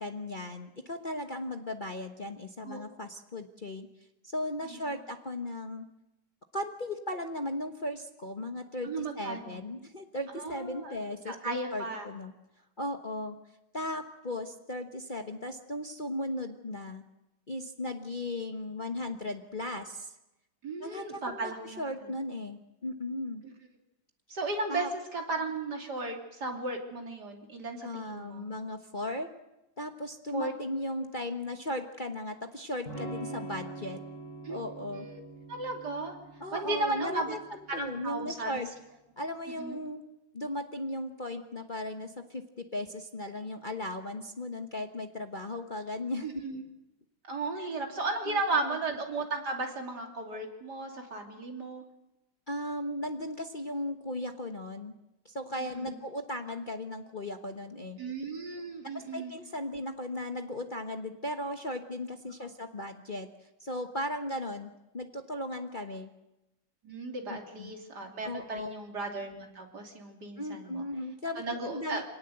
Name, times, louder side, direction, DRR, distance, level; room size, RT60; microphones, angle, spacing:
voice 1, 0.0-3.9 4.2-5.8 6.5-12.3 12.8-13.4 13.7-17.0 17.5-20.1 20.8-23.4 24.7-24.9 27.8-29.3 29.8-34.0 34.5-35.1 36.4-37.4 37.7-38.7 39.2-40.0 40.3-46.3 47.6-47.7 48.3-48.8 52.5-54.9 55.2-58.0 59.1-63.3 63.6-66.1 67.3-67.7 68.2-68.7 70.4-72.0, left 1 dB, 30° left, 5 dB, 1.2 m, -37 dB
voice 2, 8.8-9.6 10.4-11.0 11.3-12.1 20.6-21.8 24.3-24.9 25.1-28.5 30.3-30.5 34.4-34.6 34.9-35.2 35.5-36.2 36.5-37.4 37.7-38.6 39.6-39.8 46.2-46.6 47.2-51.8 55.8-55.9 58.0-59.3 62.4-62.5 66.8-70.8 71.4-72.0, right 3 dB, 60° right, 2 dB, 3.5 m, -35 dB
Electric guitar / Strum, 32.9-38.6, right 2 dB, 50° left, 7.4 m, -45 dB
26.0 x 18.5 x 8.0 m, 0.94 s
omnidirectional pair, 2.0 m